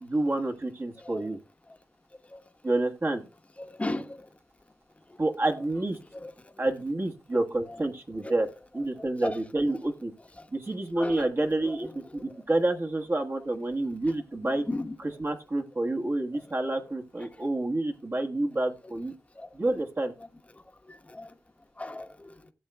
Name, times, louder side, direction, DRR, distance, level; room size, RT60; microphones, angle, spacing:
voice 1, 0.0-1.4 2.6-3.2 5.2-6.0 6.6-8.5 8.7-10.1 10.5-14.6 15.0-19.1 19.5-20.1, right 2 dB, 40° right, 1.3 m, -28 dB
voice 2, 3.6-4.2 6.2-6.3 9.2-9.3 11.0-11.2 14.7-14.9 19.4-19.5 21.1-21.3 21.8-22.3, left 2 dB, 20° left, 1.1 m, -34 dB
16.5 x 7.2 x 2.2 m
cardioid pair, 60°, 6 cm